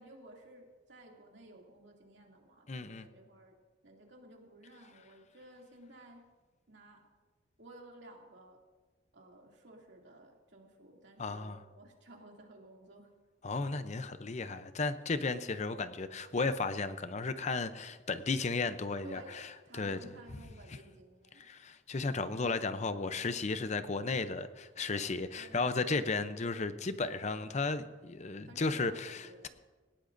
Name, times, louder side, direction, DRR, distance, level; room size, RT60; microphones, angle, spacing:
voice 1, 0.0-3.5 3.8-6.2 6.7-7.0 7.6-8.6 9.1-13.1 19.0-19.4 19.6-21.5 25.4-25.7 28.4-29.5, right 1 dB, 75° right, 0 dB, 2.6 m, -55 dB
voice 2, 2.7-3.1 11.2-11.6 13.4-19.2 19.7-20.0 21.4-29.5, left 3 dB, 40° left, 11 dB, 0.6 m, -34 dB
19.0 x 16.0 x 2.6 m, 1.3 s
head